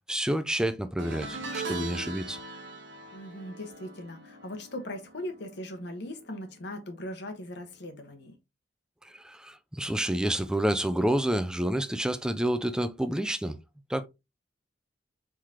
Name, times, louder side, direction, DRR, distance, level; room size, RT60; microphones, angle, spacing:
voice 1, 0.1-2.4 9.0-13.6 13.9-14.1, right 1 dB, 5° right, 0.4 m, -29 dB
sound 1, 1.0-6.4 6.6-7.0 8.2-8.3, right 3 dB, 75° right, 1.0 m, -40 dB
voice 2, 3.1-8.3, left 1 dB, 65° left, 1.2 m, -39 dB
4.7 x 3.9 x 2.8 m
head